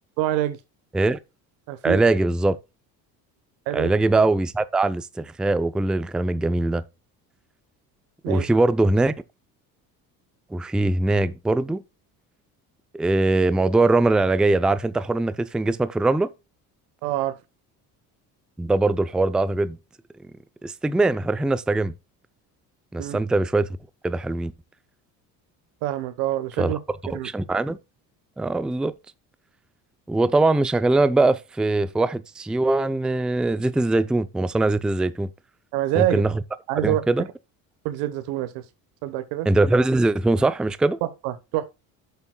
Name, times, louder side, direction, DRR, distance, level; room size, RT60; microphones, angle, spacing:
voice 1, 0.2-0.6 1.7-2.0 3.7-3.9 8.2-8.5 17.0-17.3 23.0-23.2 25.8-26.8 27.1-27.3 35.7-36.2 36.7-37.0 37.8-38.6 39.0-39.5 41.0-41.7, right 14 dB, 85° right, 1.1 m, -26 dB
voice 2, 1.8-2.6 3.7-6.8 8.3-9.1 10.5-11.8 12.9-16.3 18.6-19.8 20.6-21.9 22.9-23.7 24.0-24.5 26.6-26.7 27.1-27.8 28.4-28.9 30.1-35.3 36.0-36.3 36.8-37.3 39.5-41.0, right 2 dB, ahead, 0.4 m, -21 dB
10.5 x 7.0 x 2.2 m
supercardioid pair, 85°, 41 cm